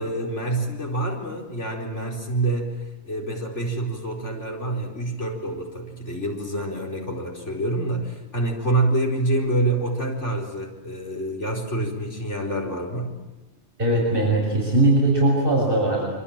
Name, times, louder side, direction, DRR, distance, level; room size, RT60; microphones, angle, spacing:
voice 1, 0.0-13.1, right 2 dB, 90° left, -1 dB, 4.8 m, -27 dB
voice 2, 13.8-16.1, right 2 dB, 50° right, -2 dB, 7.0 m, -20 dB
26.0 x 25.0 x 8.9 m, 1.1 s
omnidirectional pair, 1.2 m